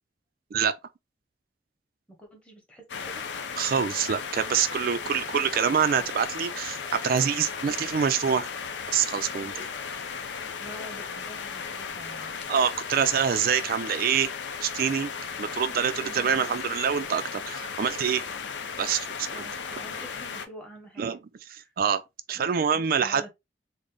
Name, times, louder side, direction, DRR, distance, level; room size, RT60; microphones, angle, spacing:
voice 1, 2.1-3.2 10.3-12.3 16.0-16.5 19.2-21.2 21.5-21.7 22.3-23.3, equal, 5° left, 1.2 m, -47 dB
sound 1, 2.9-20.5, left 6 dB, 85° left, 0.5 m, -36 dB
voice 2, 3.6-8.5 8.9-9.7 12.5-14.3 14.6-15.1 15.4-18.2 18.8-19.4 21.0-21.2 21.5-22.0 22.3-23.3, right 7 dB, 55° right, 0.3 m, -26 dB
3.8 x 2.1 x 3.4 m
head